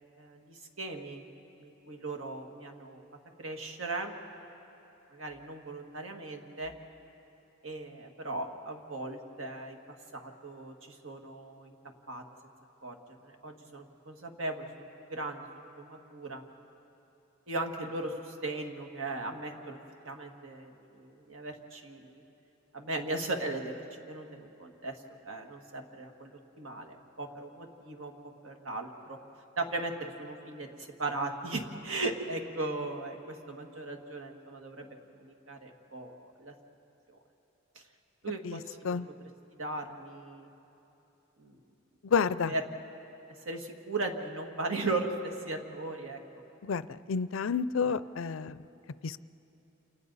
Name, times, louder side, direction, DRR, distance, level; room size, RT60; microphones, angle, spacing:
voice 1, 0.2-1.2 1.6-3.0 3.4-4.1 5.1-6.7 7.6-9.8 10.1-11.7 12.1-12.2 12.8-13.0 13.2-16.4 17.5-19.8 20.0-22.2 22.7-26.3 26.6-28.1 28.4-29.2 29.6-34.9 35.2-36.5 37.1-37.2 38.2-39.0 39.5-40.5 41.4-41.6 42.5-42.6 43.5-46.2, right 2 dB, 75° right, 4 dB, 1.8 m, -38 dB
voice 2, 42.0-42.5 46.6-46.8 47.1-48.6 49.0-49.2, left 6 dB, 75° left, 16 dB, 0.5 m, -29 dB
29.0 x 28.0 x 4.1 m, 3.0 s
head